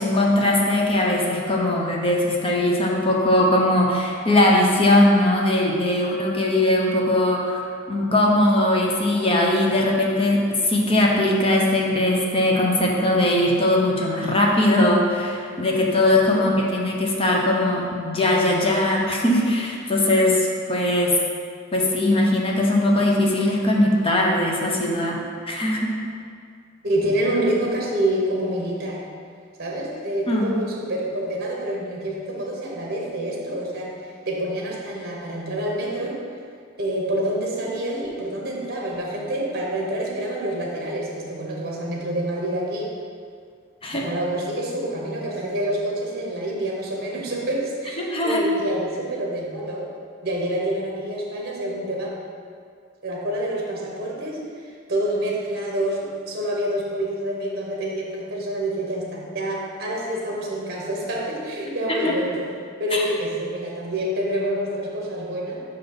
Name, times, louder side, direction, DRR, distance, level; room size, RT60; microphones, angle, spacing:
voice 1, 0.0-7.6 7.9-21.2 21.7-25.2 25.4-26.0 30.3-30.5 43.8-44.0 48.0-48.5 62.0-62.1 62.9-63.0, left 1 dB, 30° left, -1 dB, 0.8 m, -20 dB
voice 2, 26.8-29.0 29.6-36.2 36.8-42.9 43.9-49.9 50.2-52.1 53.0-62.5 62.8-65.6, right 1 dB, 50° right, -2 dB, 1.1 m, -27 dB
5.6 x 4.0 x 5.2 m, 2.2 s
head